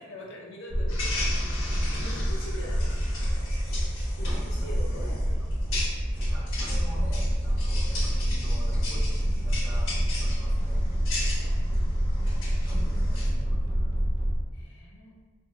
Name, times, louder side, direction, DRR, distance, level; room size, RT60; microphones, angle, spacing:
voice 1, 0.0-1.7 2.0-3.2 4.2-5.6 11.0-12.2 14.5-15.1, equal, 65° left, -1 dB, 0.6 m, -44 dB
sound 1, 0.7-14.4, equal, 65° right, 0.7 m, -27 dB
sound 2, 0.9-13.3, left 2 dB, 85° left, 1.1 m, -38 dB
voice 2, 4.2-5.1 6.2-10.8 12.1-14.1, right 1 dB, 10° right, -6 dB, 0.5 m, -45 dB
4.0 x 2.6 x 2.3 m, 1.4 s
head